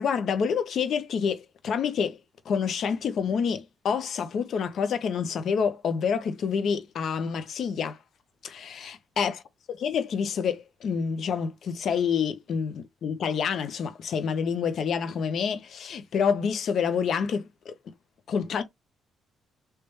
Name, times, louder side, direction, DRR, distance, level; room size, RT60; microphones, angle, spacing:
voice 1, 0.0-2.2 2.5-8.0 8.4-9.4 9.7-17.7 18.3-18.6, left 6 dB, 65° left, 0.7 m, -28 dB
3.2 x 3.2 x 3.2 m
cardioid pair, 90°, 0 cm